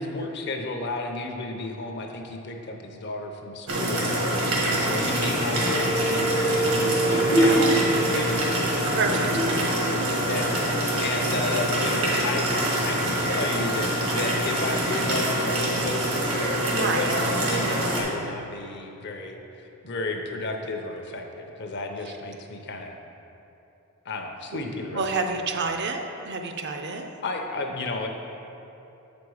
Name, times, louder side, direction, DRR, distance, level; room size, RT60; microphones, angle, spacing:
voice 1, 0.0-8.9 9.2-9.3 10.3-10.5 11.0-16.4 16.6-22.9 24.1-25.0 25.4-25.5 27.2-28.1, left 2 dB, 50° left, 3 dB, 0.7 m, -33 dB
sound 1, 3.7-18.0, right 1 dB, 85° right, 1.6 m, -25 dB
sound 2, 5.1-10.8 11.2-11.3, right 1 dB, 75° left, 1.1 m, -26 dB
voice 2, 7.4-7.8 8.9-9.7 16.7-17.2 24.5-24.6 24.9-27.1, right 4 dB, 55° right, 5 dB, 0.5 m, -29 dB
7.5 x 5.2 x 4.7 m, 2.9 s
head